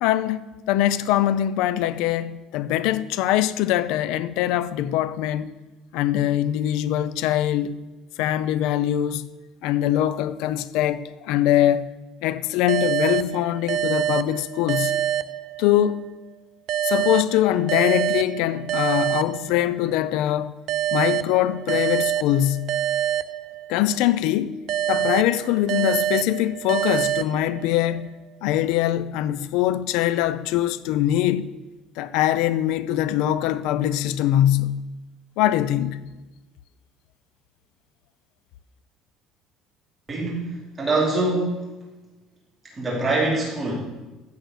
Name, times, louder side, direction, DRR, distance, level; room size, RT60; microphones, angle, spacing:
voice 1, 0.0-5.5 5.9-7.8 8.2-9.3 9.6-11.9 12.2-15.0 15.6-16.1 16.8-20.6 20.9-22.7 23.7-24.6 24.9-28.1 28.4-31.5 32.0-34.8 35.4-36.0, left 12 dB, 80° left, 0.6 m, -22 dB
sound 1, 12.7-16.0 16.7-20.0 20.7-24.0 24.7-28.0, right 11 dB, 55° right, 0.4 m, -26 dB
voice 2, 40.1-41.7 42.7-43.7, right 2 dB, 15° right, 4.3 m, -24 dB
15.5 x 6.3 x 6.5 m
cardioid pair, 150°, 0 cm